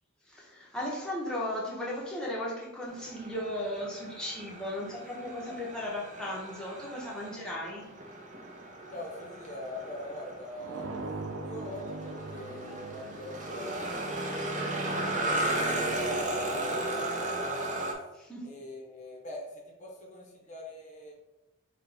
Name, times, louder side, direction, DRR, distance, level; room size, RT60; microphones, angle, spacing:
voice 1, 0.3-7.8 18.3-18.5, left 1 dB, 5° left, -5 dB, 0.9 m, -36 dB
sound 1, 2.9-17.9, right 1 dB, 40° right, 0.7 m, -35 dB
voice 2, 8.9-10.9 11.4-15.8 16.2-17.9 18.4-21.1, left 1 dB, 35° left, -1 dB, 0.8 m, -44 dB
sound 2, 10.6-15.3, right 2 dB, 75° right, 0.4 m, -41 dB
5.7 x 2.3 x 3.4 m, 0.97 s
head